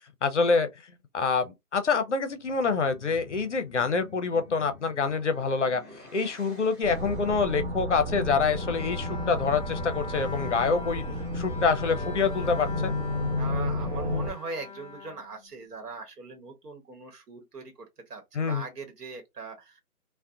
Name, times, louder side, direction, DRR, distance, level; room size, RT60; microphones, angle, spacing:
voice 1, 0.2-0.7 1.1-5.8 6.1-11.0 11.3-13.0 18.3-18.6, left 4 dB, 50° left, 0.5 m, -26 dB
sound 1, 2.3-7.7, left 3 dB, 10° right, 0.9 m, -50 dB
sound 2, 6.8-14.3, left 1 dB, 40° right, 0.9 m, -32 dB
Bowed string instrument, 8.5-15.9, left 5 dB, 25° left, 1.0 m, -42 dB
voice 2, 13.3-19.8, right 4 dB, 85° right, 1.1 m, -40 dB
2.4 x 2.1 x 2.6 m
hypercardioid pair, 165°, 46 cm